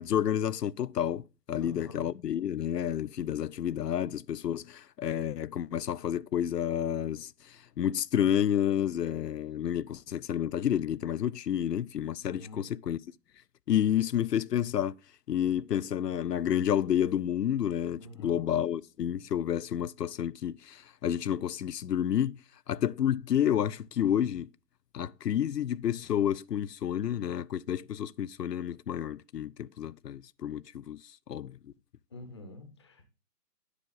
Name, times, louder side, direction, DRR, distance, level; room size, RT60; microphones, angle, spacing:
voice 1, 0.0-13.0 13.7-15.0 15.3-22.4 22.7-24.5 24.9-31.7, left 10 dB, 80° left, 0.5 m, -30 dB
voice 2, 1.6-2.1 12.3-12.7 17.9-18.4 32.1-33.0, left 2 dB, 20° left, 0.7 m, -46 dB
9.9 x 4.7 x 3.8 m
figure-of-eight pair, 140°, 48 cm